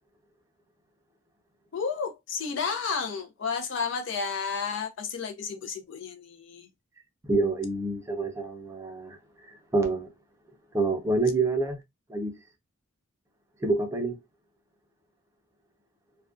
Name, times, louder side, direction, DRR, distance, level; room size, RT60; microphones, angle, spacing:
voice 1, 1.7-6.7, left 5 dB, 65° left, 0.5 m, -32 dB
voice 2, 7.3-9.2 9.5-10.1 10.7-11.8 12.1-12.3 13.6-14.2, right 3 dB, 15° right, 0.5 m, -27 dB
2.4 x 2.1 x 2.4 m
head